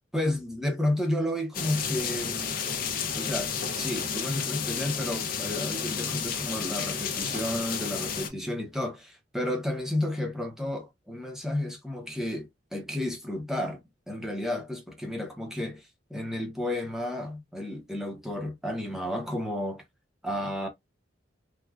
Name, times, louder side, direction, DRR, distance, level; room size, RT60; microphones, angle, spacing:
voice 1, 0.1-2.5 3.1-19.8 20.2-20.7, left 1 dB, ahead, 0.8 m, -32 dB
sound 1, 1.5-8.3, left 6 dB, 45° left, 0.6 m, -31 dB
3.4 x 2.4 x 2.3 m
head